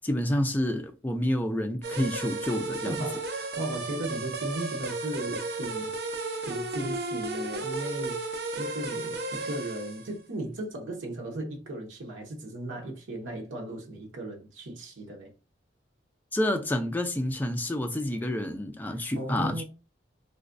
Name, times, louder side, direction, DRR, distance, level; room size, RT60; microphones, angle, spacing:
voice 1, 0.0-2.9 16.3-19.6, left 1 dB, 10° left, 0.3 m, -29 dB
sound 1, 1.8-10.1, right 3 dB, 55° right, 0.5 m, -34 dB
voice 2, 2.9-15.3 18.9-19.6, right 1 dB, 80° right, 0.8 m, -36 dB
3.9 x 2.2 x 2.5 m
head